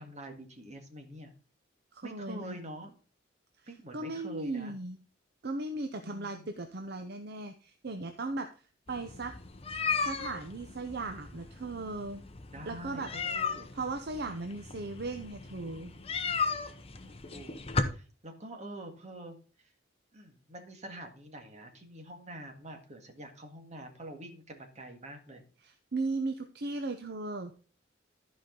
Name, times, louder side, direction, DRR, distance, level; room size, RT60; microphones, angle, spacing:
voice 1, 0.0-1.3 2.0-3.0 3.7-4.7 6.0-6.6 12.5-13.7 17.0-17.6 17.9-19.7 20.1-25.4, right 1 dB, 35° right, 4 dB, 1.8 m, -46 dB
voice 2, 1.9-2.6 3.9-5.0 5.4-8.5 8.9-9.3 10.0-12.2 12.7-13.1 13.7-15.9 25.6-27.6, right 2 dB, 55° right, 6 dB, 0.7 m, -37 dB
sound 1, 8.9-17.8, left 4 dB, 30° left, 0.8 m, -36 dB
13.5 x 5.2 x 3.8 m, 0.37 s
head